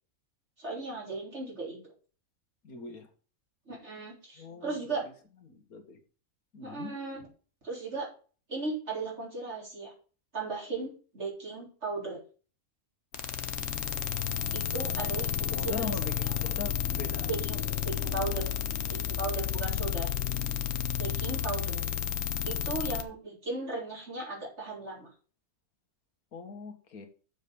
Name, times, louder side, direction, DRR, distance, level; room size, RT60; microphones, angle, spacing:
voice 1, 0.6-1.9 3.7-5.0 6.6-7.3 7.6-8.1 8.5-9.9 10.3-12.2 14.5-16.0 17.3-18.6 18.9-20.1 21.0-21.8 22.4-25.1, right 3 dB, 50° right, -3 dB, 3.8 m, -36 dB
voice 2, 2.6-3.1 4.4-5.0 5.5-6.0 6.5-6.9 15.5-17.3 26.3-27.1, left 4 dB, 90° left, 6 dB, 1.9 m, -41 dB
sound 1, 13.1-23.0, left 10 dB, 55° left, 1.0 m, -31 dB
7.3 x 5.1 x 7.0 m, 0.38 s
omnidirectional pair, 1.5 m